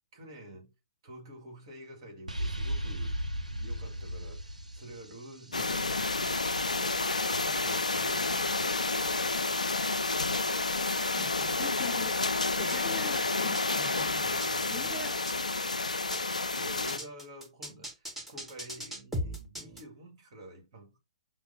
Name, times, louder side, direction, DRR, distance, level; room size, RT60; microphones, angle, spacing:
voice 1, 0.1-0.7 1.0-3.2 3.6-7.1 7.4-9.2 14.2-15.0 16.2-21.0, right 1 dB, 45° right, 1.9 m, -48 dB
sound 1, 2.3-6.0, equal, 90° right, 0.6 m, -35 dB
sound 2, 5.5-17.0, left 3 dB, 80° left, 0.4 m, -30 dB
sound 3, 5.8-11.9 12.3-19.8, equal, 5° right, 1.2 m, -41 dB
voice 2, 11.2-12.1 12.6-14.2 14.7-15.2, left 4 dB, 15° left, 0.8 m, -42 dB
5.9 x 2.2 x 3.8 m
figure-of-eight pair, 120°, 4 cm